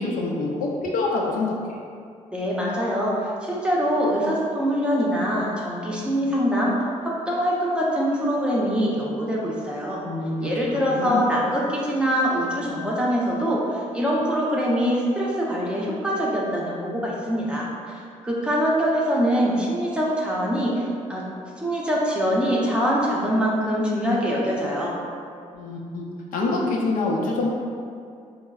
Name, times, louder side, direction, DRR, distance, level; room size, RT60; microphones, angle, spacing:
voice 1, 0.0-1.5 10.0-11.2 25.5-26.1 26.3-27.5, left 3 dB, 75° left, -2 dB, 0.5 m, -26 dB
voice 2, 2.3-6.8 7.0-10.0 10.4-21.2 21.6-25.0, equal, 5° right, -5 dB, 0.6 m, -24 dB
4.3 x 2.0 x 2.3 m, 2.4 s
cardioid pair, 95°, 14 cm